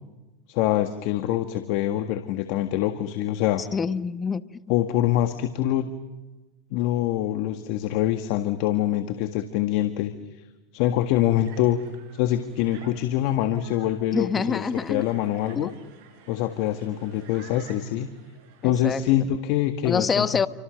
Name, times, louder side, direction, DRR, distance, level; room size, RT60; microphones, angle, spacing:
voice 1, 0.5-3.6 4.7-5.9 6.7-10.1 10.7-11.8 12.1-14.6 14.9-15.7 16.3-18.1 18.6-20.3, left 12 dB, 60° left, 8 dB, 1.8 m, -24 dB
voice 2, 3.6-4.5 14.1-15.1 15.5-15.7 18.6-19.0 19.8-20.5, left 5 dB, 20° left, 13 dB, 1.2 m, -26 dB
sound 1, 11.4-19.1, right 6 dB, 60° right, 7.5 m, -52 dB
29.0 x 25.5 x 6.5 m, 1.1 s
hypercardioid pair, 110°, 0 cm